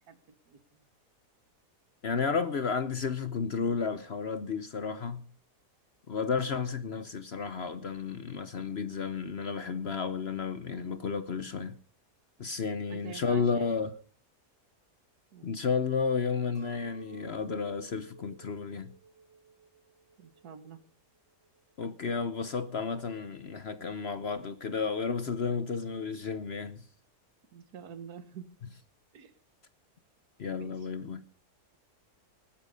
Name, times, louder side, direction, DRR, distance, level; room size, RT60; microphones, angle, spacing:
voice 1, 0.1-0.9 12.9-13.7 15.3-15.5 20.2-20.8 27.5-28.4 29.1-29.3 30.6-30.8, right 7 dB, 70° right, 1.8 m, -47 dB
voice 2, 2.0-5.2 6.1-11.8 12.4-13.9 15.4-19.0 21.8-26.9 30.4-31.2, left 5 dB, 50° left, 0.9 m, -32 dB
Chink clink, 16.5-20.8 21.3-21.9, right 4 dB, 20° right, 3.7 m, -54 dB
19.5 x 10.0 x 5.3 m
omnidirectional pair, 1.7 m